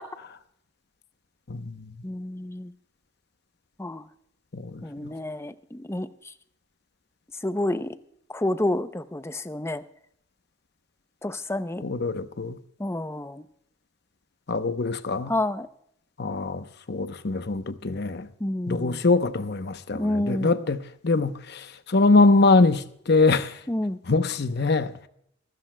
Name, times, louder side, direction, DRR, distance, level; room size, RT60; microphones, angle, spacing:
voice 1, 1.5-2.0 4.5-5.1 11.8-12.6 14.5-15.3 16.2-18.3 18.7-23.6 24.1-24.9, left 3 dB, 55° left, 0.8 m, -23 dB
voice 2, 2.0-2.7 3.8-4.0 4.8-6.1 7.4-7.9 8.3-9.8 11.2-11.8 12.8-13.4 15.3-15.7 18.4-19.0 19.9-20.6 23.7-24.0, left 1 dB, 15° left, 0.6 m, -29 dB
23.5 x 13.5 x 2.2 m
head